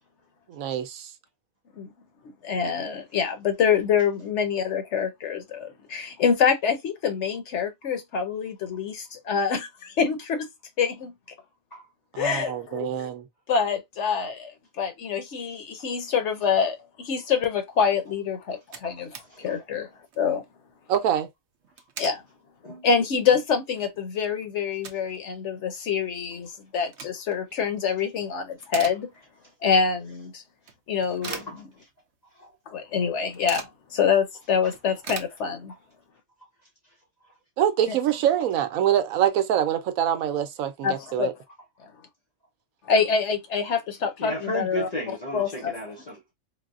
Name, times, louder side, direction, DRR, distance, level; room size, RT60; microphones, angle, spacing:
voice 1, 0.5-1.1 12.1-13.3 20.9-21.3 37.6-41.3, right 10 dB, 85° right, 1.1 m, -25 dB
voice 2, 2.4-10.5 10.8-11.1 12.2-13.1 13.5-19.1 19.4-19.9 20.2-20.4 22.0-22.2 22.8-29.1 29.6-30.4 30.9-31.7 32.7-35.7 37.9-38.0 40.8-41.3 42.9-44.9 45.3-45.8, left 6 dB, 60° left, 1.0 m, -26 dB
sound 1, 18.1-18.2 18.4-19.3 19.7-19.8 20.0-20.3 21.5-22.2 22.7-22.8 23.4-23.5 23.8-25.2 25.5-25.6 26.6-27.4 27.9-28.2 28.5-29.5 29.9-30.0 30.7-32.2 32.4-32.5 32.8-33.8 34.2-34.3 34.5-35.9, right 7 dB, 60° right, 0.8 m, -41 dB
voice 3, 31.2-31.6 32.4-32.5 44.2-46.3, equal, 45° left, 0.5 m, -34 dB
3.9 x 2.0 x 2.3 m
omnidirectional pair, 1.4 m